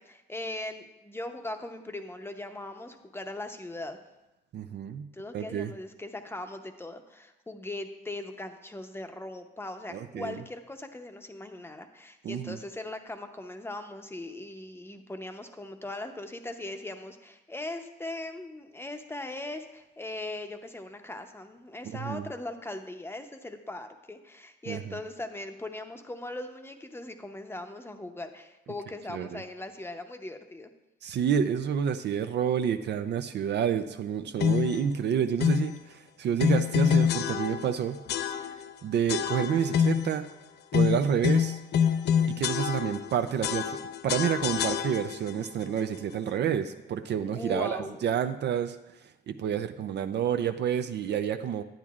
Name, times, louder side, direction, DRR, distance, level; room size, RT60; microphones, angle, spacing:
voice 1, 0.0-4.0 5.1-30.7 47.3-48.0, left 2 dB, 10° left, 6 dB, 0.7 m, -39 dB
voice 2, 4.5-5.1 5.3-5.7 9.9-10.4 12.2-12.6 21.8-22.3 24.7-25.0 29.1-29.4 31.0-38.0 38.8-40.3 40.7-41.6 42.3-43.8 44.0-48.8 49.3-51.6, right 8 dB, 60° right, 8 dB, 0.5 m, -29 dB
sound 1, 34.4-34.8 35.4-35.8 36.4-37.8 38.1-38.7 39.1-40.2 40.7-43.1 43.4-45.3, left 8 dB, 60° left, 0.4 m, -26 dB
10.5 x 9.2 x 2.4 m, 0.99 s
cardioid pair, 90°, 20 cm